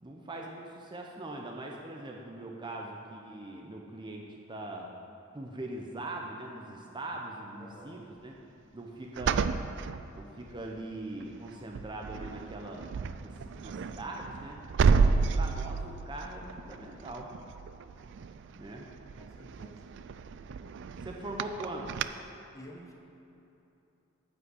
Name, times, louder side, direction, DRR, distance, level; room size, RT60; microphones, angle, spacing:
voice 1, 0.0-4.9 5.3-8.4 8.7-9.5 10.1-12.9 13.2-14.6 15.0-17.3 18.5-18.9 21.0-22.0, right 2 dB, 25° right, 0 dB, 0.7 m, -41 dB
voice 2, 7.6-8.0 19.2-19.9 22.5-22.9, equal, 15° left, 0 dB, 1.2 m, -50 dB
sound 1, 9.2-10.7 11.2-11.5 11.7-22.0, right 5 dB, 60° right, 0.4 m, -31 dB
9.9 x 5.2 x 8.2 m, 2.9 s
head